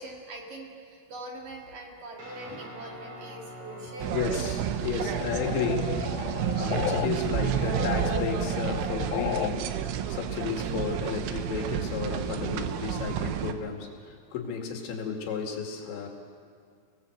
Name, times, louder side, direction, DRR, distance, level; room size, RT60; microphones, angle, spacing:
voice 1, 0.0-4.2 5.1-5.3 6.4-6.5, right 1 dB, 55° right, 0 dB, 3.0 m, -43 dB
Guitar, 2.2-11.6, equal, 30° right, 5.1 m, -46 dB
sound 1, 4.0-13.5, right 10 dB, 85° right, 3.6 m, -30 dB
voice 2, 4.1-6.3 6.6-16.1, left 6 dB, 70° left, 2 dB, 4.3 m, -33 dB
sound 2, 5.0-7.1 7.4-9.5, left 11 dB, 85° left, 3.3 m, -34 dB
29.5 x 19.5 x 7.9 m, 2.2 s
omnidirectional pair, 5.6 m